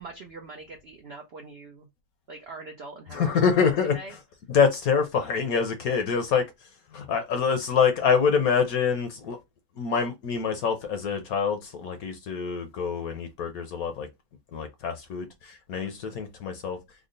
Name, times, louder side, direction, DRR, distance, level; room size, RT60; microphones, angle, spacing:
voice 1, 0.0-1.9 2.3-3.3 3.6-4.1 15.8-15.9, right 3 dB, 75° right, 0.5 m, -42 dB
voice 2, 3.1-4.0 4.5-6.4 6.9-9.4 9.8-14.1 14.5-16.8, left 6 dB, 65° left, 1.0 m, -25 dB
3.7 x 2.0 x 3.7 m
omnidirectional pair, 1.9 m